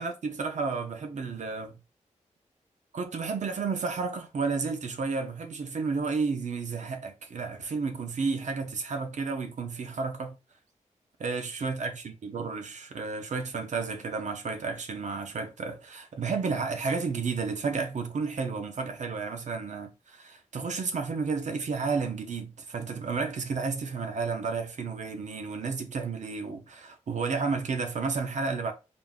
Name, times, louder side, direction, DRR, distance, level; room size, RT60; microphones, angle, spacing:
voice 1, 0.0-1.8 2.9-10.4 11.2-28.7, right 4 dB, 70° right, 0.7 m, -32 dB
3.9 x 3.6 x 2.4 m
cardioid pair, 80°, 13 cm